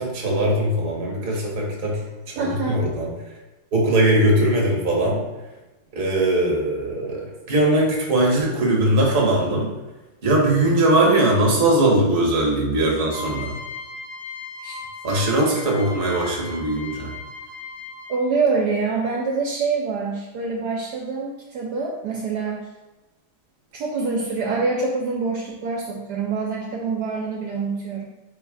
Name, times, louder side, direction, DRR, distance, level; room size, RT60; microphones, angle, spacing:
voice 1, 0.0-2.0 2.3-3.1 3.7-5.2 5.9-9.7 10.2-13.5 15.0-17.1, right 1 dB, 40° right, -2 dB, 0.9 m, -20 dB
voice 2, 2.4-2.9 14.6-14.8 18.1-22.7 23.7-28.0, right 4 dB, 70° right, -2 dB, 1.0 m, -25 dB
sound 1, 13.1-18.3, left 4 dB, 50° left, 0.8 m, -37 dB
4.3 x 2.3 x 4.7 m, 1.1 s
omnidirectional pair, 2.0 m